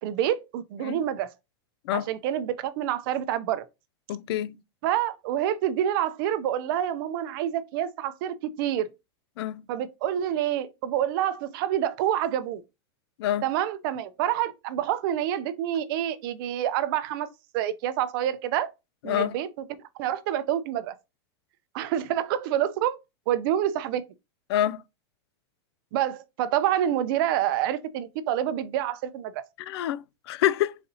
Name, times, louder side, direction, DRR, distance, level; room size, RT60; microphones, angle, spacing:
voice 1, 0.0-1.3 1.9-3.6 4.8-8.9 9.7-12.6 13.4-17.3 17.5-18.7 19.0-19.7 20.0-20.9 21.7-23.0 23.3-24.0 25.9-29.4, right 11 dB, 55° right, 0.5 m, -27 dB
voice 2, 4.1-4.6 9.4-9.6 13.2-13.5 19.0-19.3 24.5-24.8 29.6-30.8, left 12 dB, 70° left, 0.4 m, -27 dB
4.1 x 2.7 x 4.0 m
supercardioid pair, 145°, 14 cm